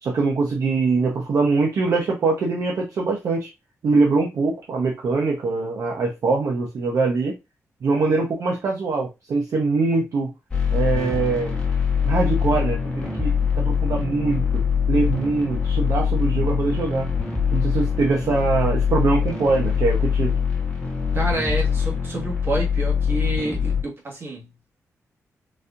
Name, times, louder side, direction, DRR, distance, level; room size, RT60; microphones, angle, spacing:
voice 1, 0.0-3.5 3.8-7.4 7.8-10.3 10.7-11.6 12.0-17.1 17.5-20.4, right 3 dB, 65° right, 0.7 m, -23 dB
sound 1, 10.5-23.8, left 7 dB, 20° left, 1.2 m, -23 dB
voice 2, 21.1-24.5, right 2 dB, 45° right, 1.5 m, -28 dB
4.0 x 2.7 x 2.4 m
wide cardioid pair, 150°, 6 cm